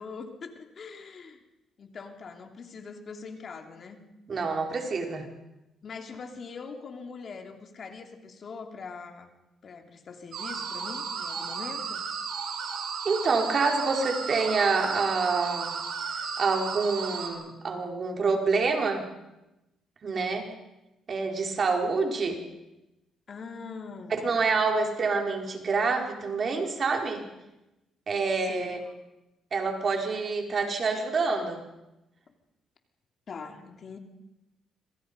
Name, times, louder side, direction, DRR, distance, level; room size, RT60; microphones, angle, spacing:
voice 1, 0.0-1.4 1.8-4.0 5.8-9.3 9.6-12.0 23.3-24.4 28.5-28.9 33.3-34.0, left 5 dB, 50° left, 4 dB, 3.1 m, -42 dB
voice 2, 4.3-5.2 13.0-15.8 16.4-19.0 20.0-20.5 21.1-22.4 24.2-27.2 28.1-28.8 29.5-31.6, right 4 dB, 45° right, 2 dB, 4.7 m, -27 dB
sound 1, 10.3-17.3, right 5 dB, 75° right, 6.4 m, -34 dB
26.0 x 26.0 x 5.4 m, 0.95 s
cardioid pair, 90°, 0 cm